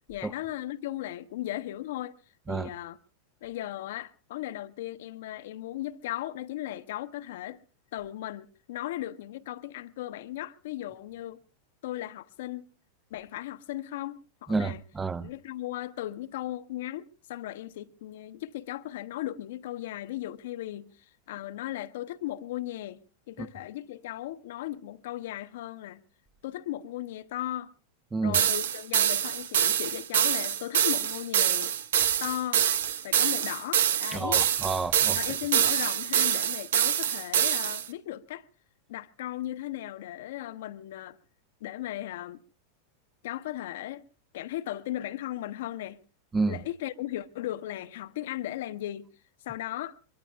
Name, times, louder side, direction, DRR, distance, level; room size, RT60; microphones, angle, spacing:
voice 1, 0.1-2.1 2.5-3.0 3.4-7.6 7.9-11.4 11.8-12.7 13.1-14.8 15.2-26.0 26.4-27.7 28.2-31.7 32.2-32.7 33.0-34.4 35.1-38.5 38.9-41.2 41.6-42.4 43.2-44.0 44.3-46.0 46.5-49.1 49.4-50.0, left 14 dB, 55° left, 0.9 m, -37 dB
voice 2, 14.5-15.3 23.4-23.5 28.1-28.4 34.1-35.2 46.3-46.6, right 4 dB, 15° right, 0.7 m, -29 dB
sound 1, 28.3-37.9, right 9 dB, 60° right, 0.8 m, -25 dB
24.0 x 23.5 x 2.3 m
figure-of-eight pair, 90°, 0 cm